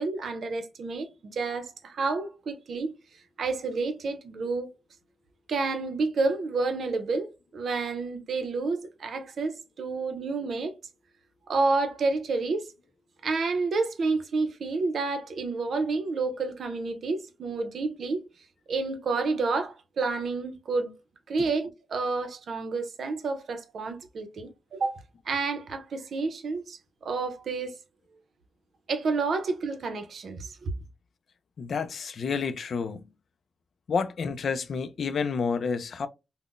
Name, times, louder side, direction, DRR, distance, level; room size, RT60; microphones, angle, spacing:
voice 1, 0.0-2.9 3.4-4.7 5.5-10.7 11.5-12.7 13.2-18.2 18.7-21.0 21.3-25.0 25.3-27.7 28.9-30.7, right 3 dB, 70° right, 0.6 m, -29 dB
voice 2, 31.6-33.1 33.9-36.1, left 5 dB, 65° left, 0.3 m, -29 dB
3.7 x 2.0 x 2.4 m
wide cardioid pair, 125°, 0 cm